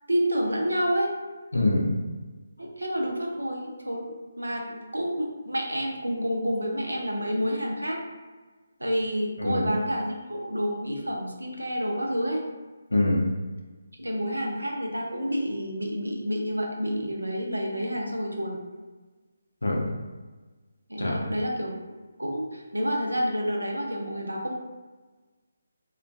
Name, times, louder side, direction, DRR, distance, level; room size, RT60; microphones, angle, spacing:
voice 1, 0.1-1.1 2.6-4.0 4.4-8.0 8.8-12.4 14.0-18.6 20.9-21.7 22.2-24.5, equal, 85° right, 0 dB, 0.5 m, -29 dB
voice 2, 1.5-2.0 9.5-9.7 12.9-13.3 19.6-19.9 21.0-21.3, left 1 dB, 75° left, 0 dB, 0.5 m, -24 dB
2.3 x 2.2 x 2.5 m, 1.3 s
figure-of-eight pair, 150°, 0 cm